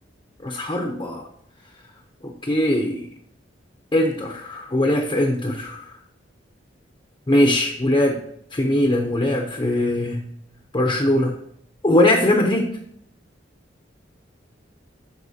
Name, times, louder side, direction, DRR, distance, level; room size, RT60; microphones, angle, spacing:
voice 1, 0.4-1.2 2.2-3.1 3.9-5.8 7.3-8.2 8.5-10.2 10.7-11.3 11.8-12.7, left 1 dB, 25° left, 1 dB, 0.6 m, -20 dB
11.0 x 4.3 x 2.8 m, 0.70 s
head